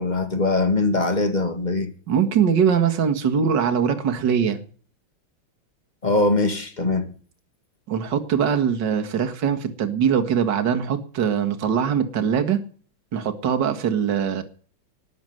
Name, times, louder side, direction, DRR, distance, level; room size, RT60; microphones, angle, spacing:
voice 1, 0.0-1.9 6.0-7.1, left 2 dB, 20° left, 1.9 m, -22 dB
voice 2, 2.1-4.6 7.9-12.6 13.1-14.4, right 7 dB, 60° right, 2.3 m, -22 dB
19.5 x 7.3 x 7.8 m
omnidirectional pair, 2.2 m